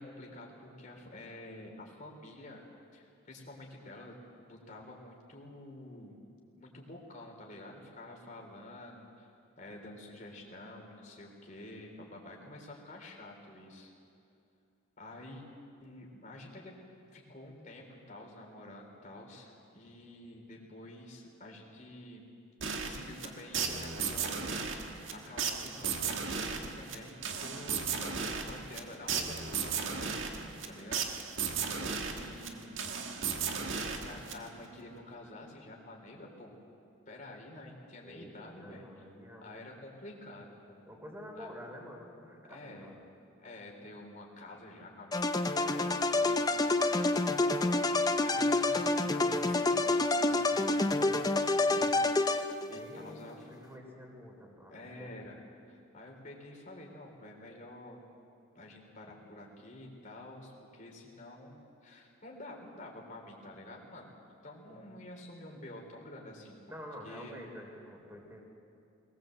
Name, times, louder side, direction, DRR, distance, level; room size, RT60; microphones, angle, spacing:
voice 1, 0.0-2.6 2.9-6.2 6.6-13.9 15.0-15.5 15.8-16.7 17.1-22.3 22.6-31.1 31.6-32.8 33.8-36.5 37.1-39.1 39.4-40.8 41.3-41.5 42.5-43.0 43.4-46.5 46.8-51.9 52.2-52.4 52.7-53.5 54.7-58.0 58.5-64.1 64.4-66.6 67.0-67.4, left 1 dB, 35° left, 0 dB, 3.7 m, -49 dB
sound 1, 22.6-34.7, right 6 dB, 60° right, 1.7 m, -36 dB
voice 2, 31.5-31.8 38.0-39.6 40.9-43.0 52.7-54.7 55.0-55.1 64.7-65.0 66.7-68.4, equal, 10° right, 1 dB, 3.6 m, -48 dB
sound 2, 45.1-52.8, left 2 dB, 20° left, 0.6 m, -28 dB
22.0 x 20.0 x 7.8 m, 2.6 s
head